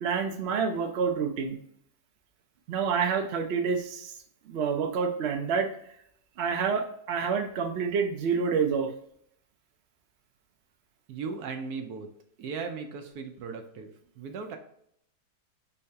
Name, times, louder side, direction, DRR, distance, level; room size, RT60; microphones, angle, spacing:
voice 1, 0.0-1.6 2.7-4.1 4.5-5.7 6.4-8.9, right 6 dB, 60° right, 3 dB, 0.7 m, -28 dB
voice 2, 11.1-12.1 12.4-13.9 14.2-14.6, right 5 dB, 75° right, 5 dB, 1.1 m, -37 dB
4.7 x 2.8 x 3.3 m, 0.69 s
omnidirectional pair, 1.7 m